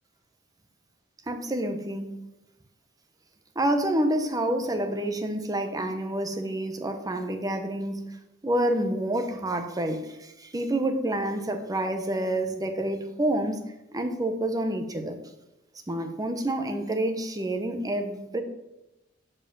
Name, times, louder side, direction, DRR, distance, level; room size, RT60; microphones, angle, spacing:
voice 1, 1.3-2.2 3.5-8.1 8.4-13.6 13.9-15.2 15.9-18.4, right 1 dB, 20° right, 6 dB, 0.9 m, -28 dB
7.5 x 4.9 x 6.9 m, 0.94 s
head